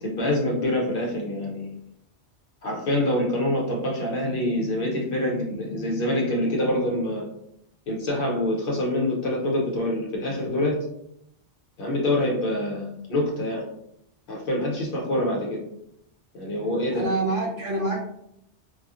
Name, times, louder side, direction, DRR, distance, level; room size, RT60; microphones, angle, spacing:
voice 1, 0.0-1.7 2.6-7.3 7.9-10.8 11.8-13.7 14.3-15.6 16.3-17.1, left 1 dB, 60° left, -2 dB, 0.7 m, -26 dB
voice 2, 16.9-18.0, right 2 dB, 55° right, -2 dB, 0.8 m, -26 dB
2.6 x 2.3 x 2.3 m, 0.76 s
omnidirectional pair, 1.2 m